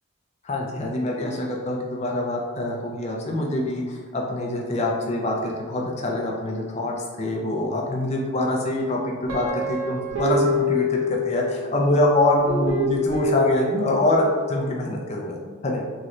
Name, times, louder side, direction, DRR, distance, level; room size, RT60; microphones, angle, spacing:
voice 1, 0.4-11.4 11.7-15.8, left 1 dB, 30° left, -1 dB, 0.4 m, -25 dB
Guitar, 9.3-11.7 12.4-14.4, left 2 dB, 90° right, 0.7 m, -26 dB
3.1 x 2.9 x 2.5 m, 1.5 s
head